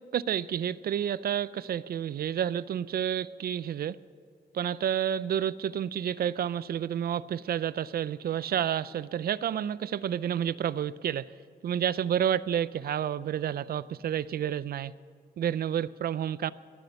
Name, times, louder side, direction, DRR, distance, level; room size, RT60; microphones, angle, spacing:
voice 1, 0.1-4.0 4.5-11.3 11.6-14.9 15.4-16.5, right 9 dB, 60° right, 18 dB, 0.4 m, -30 dB
21.5 x 9.4 x 6.9 m, 2.2 s
wide cardioid pair, 145°, 17 cm